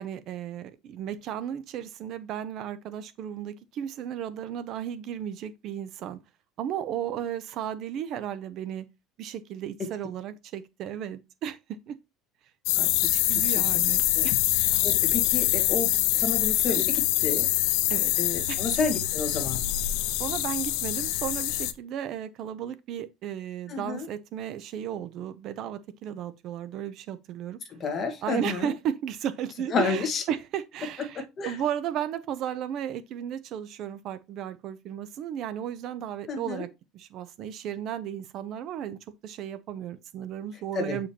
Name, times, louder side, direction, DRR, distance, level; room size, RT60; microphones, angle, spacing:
voice 1, 0.0-6.2 6.6-8.9 9.2-12.0 13.1-14.4 16.7-16.8 17.9-18.1 18.5-18.6 20.1-27.6 28.2-41.1, right 9 dB, 40° right, 0.5 m, -34 dB
sound 1, 12.7-21.7, left 15 dB, 65° left, 0.6 m, -25 dB
voice 2, 12.8-13.1 13.4-13.7 14.1-14.3 14.8-15.9 16.2-17.5 18.2-19.6 23.7-24.0 27.7-28.7 29.7-30.2 31.1-31.5 36.3-36.6 40.7-41.0, left 4 dB, 25° left, 1.4 m, -30 dB
8.1 x 5.0 x 2.8 m
cardioid pair, 170°, 0 cm